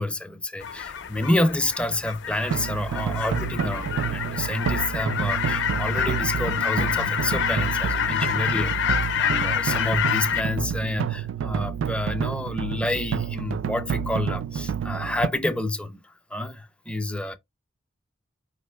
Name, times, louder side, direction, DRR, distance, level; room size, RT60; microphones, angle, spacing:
voice 1, 0.0-17.4, left 1 dB, 5° left, 0.5 m, -28 dB
sound 1, 0.6-10.4, left 8 dB, 65° left, 0.5 m, -27 dB
sound 2, 2.5-15.3, right 8 dB, 70° right, 0.3 m, -29 dB
5.0 x 2.9 x 3.3 m
head